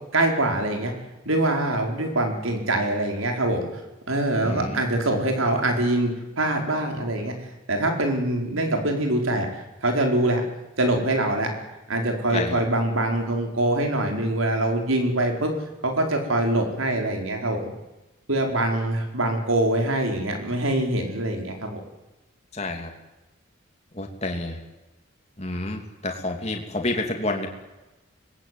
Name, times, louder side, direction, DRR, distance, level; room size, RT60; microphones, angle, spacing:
voice 1, 0.1-0.9 1.2-3.7 4.1-7.3 7.7-9.5 9.8-10.4 10.8-11.5 11.9-15.5 15.8-17.6 18.3-21.8, right 1 dB, 80° right, 3 dB, 4.7 m, -24 dB
voice 2, 4.4-4.8 12.3-12.6 22.5-22.9 23.9-24.6 25.4-27.5, left 2 dB, 30° left, 3 dB, 2.9 m, -29 dB
25.0 x 20.5 x 9.4 m, 1.1 s
head